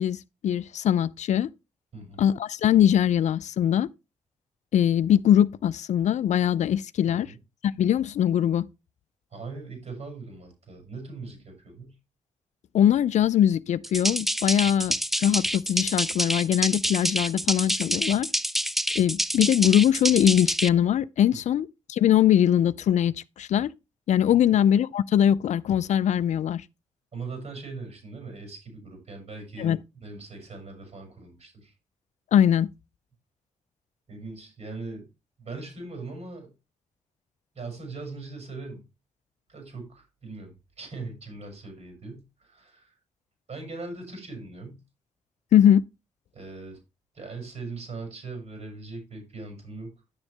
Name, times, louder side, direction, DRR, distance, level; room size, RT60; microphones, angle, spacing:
voice 1, 0.0-1.5 2.2-3.9 4.7-7.3 7.6-8.7 12.7-18.3 19.0-23.7 24.1-26.6 29.6-29.8 32.3-32.7 45.5-45.8, left 10 dB, 60° left, 0.4 m, -22 dB
voice 2, 1.9-2.3 7.1-7.4 9.3-11.9 14.6-14.7 24.3-24.5 27.1-29.7 30.0-31.7 34.1-35.1 35.4-36.5 37.5-38.8 39.5-42.9 43.5-44.8 46.3-46.8 47.1-49.9, right 3 dB, 60° right, 6.5 m, -40 dB
sound 1, 13.8-20.7, equal, ahead, 0.4 m, -27 dB
10.0 x 7.0 x 3.3 m
supercardioid pair, 45°, 13 cm